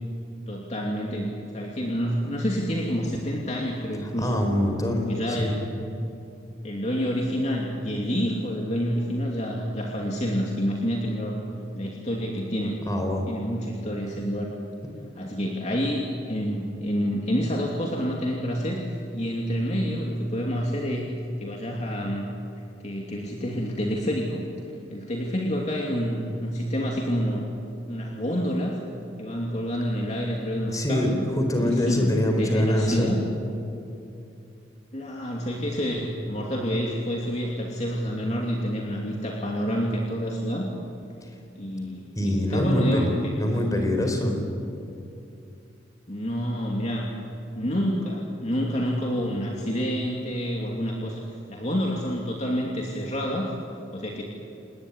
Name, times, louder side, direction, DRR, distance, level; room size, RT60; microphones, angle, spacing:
voice 1, 0.5-4.4 4.9-5.9 6.6-11.4 11.8-12.8 13.3-14.5 15.2-21.1 21.4-22.3 22.8-24.4 24.9-27.5 27.9-28.8 29.2-31.3 31.6-33.2 34.9-40.7 41.5-43.3 46.1-47.1 47.6-53.5 53.9-54.2, equal, 35° left, -1 dB, 2.8 m, -28 dB
voice 2, 4.2-5.1 5.4-5.5 12.9-13.3 30.7-33.1 42.2-44.4, left 1 dB, 20° left, 3 dB, 4.5 m, -24 dB
29.0 x 19.0 x 9.9 m, 2.7 s
head